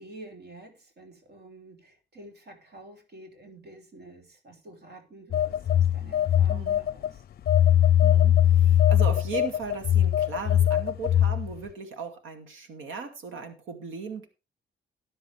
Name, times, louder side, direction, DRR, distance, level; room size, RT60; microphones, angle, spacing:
voice 1, 0.0-7.2, right 2 dB, 55° right, 4 dB, 3.2 m, -49 dB
Telephone, 5.3-7.1 7.5-11.5, left 11 dB, 50° left, 0.5 m, -21 dB
voice 2, 6.5-6.8 8.0-14.3, right 5 dB, 80° right, 7 dB, 2.4 m, -37 dB
13.5 x 9.9 x 3.4 m, 0.29 s
cardioid pair, 90°, 20 cm